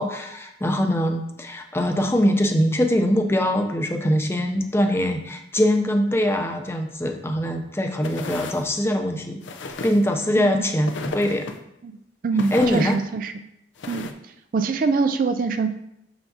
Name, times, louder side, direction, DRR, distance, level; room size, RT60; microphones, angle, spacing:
voice 1, 0.0-9.4 9.8-11.5 12.5-13.0, equal, 15° left, 4 dB, 0.5 m, -22 dB
sound 1, 8.0-8.7 9.4-10.1 10.9-11.6 12.4-13.0 13.8-14.1, left 3 dB, 85° left, 0.6 m, -34 dB
voice 2, 12.2-13.3 13.9-14.0 14.5-15.7, right 4 dB, 50° right, 9 dB, 0.3 m, -23 dB
6.7 x 5.7 x 2.8 m, 0.83 s
head